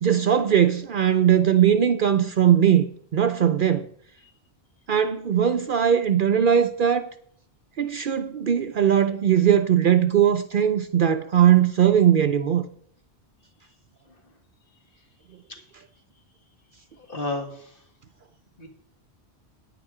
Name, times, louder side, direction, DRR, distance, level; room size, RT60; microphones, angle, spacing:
voice 1, 0.0-2.9 3.1-3.9 4.9-7.1 7.8-12.6, right 9 dB, 55° right, 0.7 m, -19 dB
voice 2, 17.0-17.8 18.6-18.7, left 2 dB, 55° left, 2.1 m, -33 dB
9.6 x 8.9 x 4.9 m
omnidirectional pair, 1.1 m